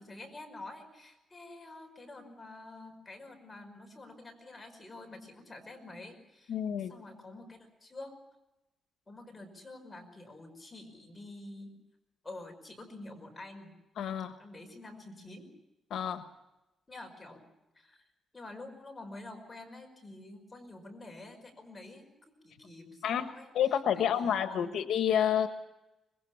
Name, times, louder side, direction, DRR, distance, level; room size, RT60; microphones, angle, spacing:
voice 1, 0.0-8.2 9.1-11.8 12.2-13.7 14.4-15.5 16.9-17.5 17.8-18.0 18.3-22.1 22.4-23.5 23.9-24.8, left 2 dB, 15° left, 2 dB, 5.4 m, -48 dB
voice 2, 6.5-6.9 14.0-14.3 15.9-16.2 23.0-23.3 23.5-25.5, left 9 dB, 80° left, 8 dB, 1.3 m, -29 dB
25.5 x 21.0 x 7.2 m, 0.99 s
cardioid pair, 150°, 0 cm